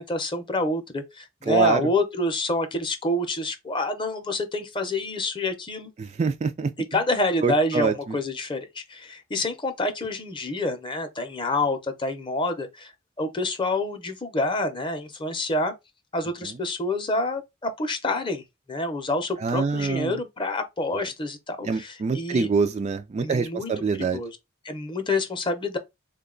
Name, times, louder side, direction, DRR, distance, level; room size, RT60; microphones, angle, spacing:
voice 1, 0.0-5.9 6.9-12.9 13.2-15.7 16.1-18.4 18.7-22.5 23.2-23.7 24.0-24.4 24.6-25.8, left 2 dB, 25° left, 0.6 m, -27 dB
voice 2, 1.5-1.8 6.0-6.7 7.4-8.2 19.4-20.2 21.6-24.2, right 4 dB, 30° right, 0.3 m, -25 dB
3.7 x 2.2 x 3.7 m
head